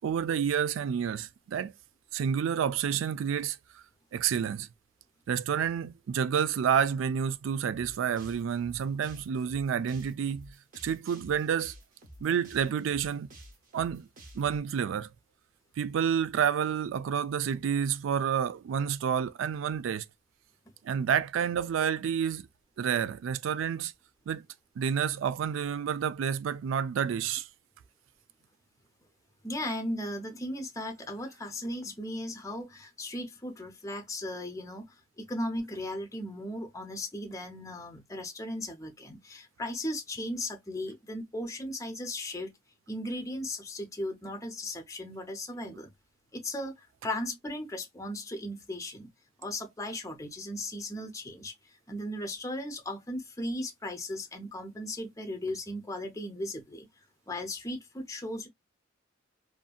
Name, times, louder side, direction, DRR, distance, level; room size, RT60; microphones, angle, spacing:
voice 1, 0.0-1.7 2.1-3.8 4.1-4.7 5.3-10.5 10.8-11.7 12.2-13.3 13.7-14.1 14.3-15.1 15.8-20.0 20.8-22.5 22.8-23.9 24.3-24.4 24.8-27.5 45.6-45.8, right 8 dB, 80° right, 0.3 m, -29 dB
sound 1, 7.7-14.6, right 1 dB, 45° right, 0.9 m, -51 dB
voice 2, 29.4-42.5 42.9-45.9 46.3-49.1 49.4-56.9 57.3-58.5, left 1 dB, 15° left, 0.6 m, -37 dB
2.6 x 2.6 x 2.3 m
head